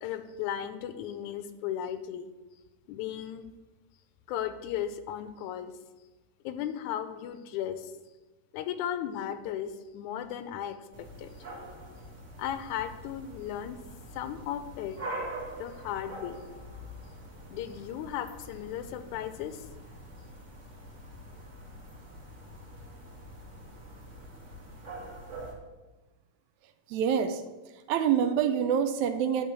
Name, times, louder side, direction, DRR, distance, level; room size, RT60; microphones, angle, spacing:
voice 1, 0.0-2.3 2.9-3.5 4.3-5.7 6.4-7.9 8.5-11.3 12.4-13.8 14.1-15.0 15.6-16.4 17.5-19.7, left 10 dB, 80° left, 10 dB, 2.0 m, -36 dB
sound 1, 10.9-25.5, right 1 dB, 30° right, 1.7 m, -44 dB
voice 2, 26.9-27.4 27.9-29.5, right 8 dB, 80° right, 9 dB, 1.9 m, -26 dB
10.0 x 3.8 x 7.4 m, 1.1 s
omnidirectional pair, 3.5 m